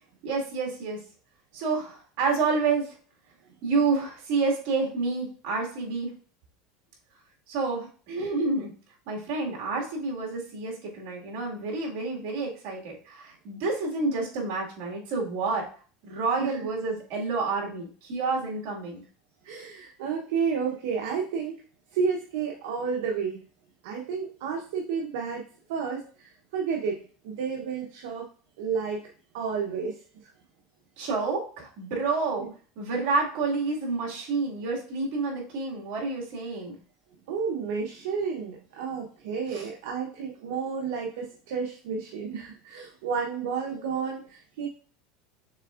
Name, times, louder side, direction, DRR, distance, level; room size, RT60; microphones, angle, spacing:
voice 1, 0.2-1.0 1.5-3.0 3.6-6.1 7.5-8.7 9.1-15.7 16.0-19.0 31.0-32.5 32.8-36.8 39.5-39.7, right 4 dB, 55° right, -2 dB, 1.9 m, -29 dB
voice 2, 19.4-21.6 21.9-23.4 23.8-25.4 25.7-27.0 27.2-28.3 28.6-29.0 29.3-30.3 32.4-32.5 37.3-44.7, right 6 dB, 70° right, 0 dB, 0.8 m, -31 dB
6.4 x 3.4 x 2.4 m, 0.41 s
supercardioid pair, 160°, 0 cm